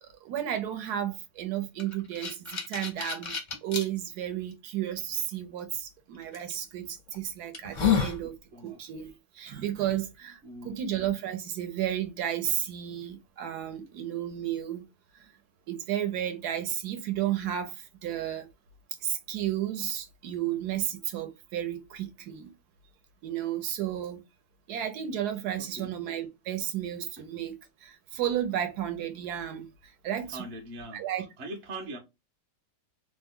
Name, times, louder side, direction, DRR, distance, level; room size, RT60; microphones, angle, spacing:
voice 1, 0.0-8.3 8.6-14.9 15.1-15.3 15.7-18.5 19.0-22.5 23.2-24.2 24.7-27.5 27.8-30.4 30.9-31.2, right 11 dB, 70° right, 1.1 m, -33 dB
sound 1, 1.8-3.8 4.5-4.6 6.3-6.5 7.1-7.2 7.5-8.2, left 7 dB, 45° left, 0.5 m, -29 dB
voice 2, 8.2-8.8 10.4-10.9 25.8-25.9 30.3-31.0 31.4-32.0, right 1 dB, 50° right, 0.8 m, -41 dB
3.0 x 2.1 x 3.5 m
omnidirectional pair, 1.9 m